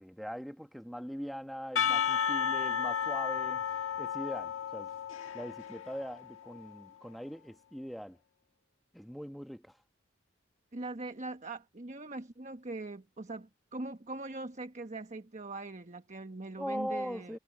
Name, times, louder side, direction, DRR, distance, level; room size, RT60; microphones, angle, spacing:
voice 1, 0.0-3.6 4.0-4.9 5.3-8.2 8.9-9.8 16.6-17.4, equal, ahead, 1.3 m, -41 dB
Percussion / Church bell, 1.8-6.8, left 8 dB, 90° left, 1.6 m, -33 dB
voice 2, 10.7-17.4, right 2 dB, 35° right, 1.2 m, -41 dB
head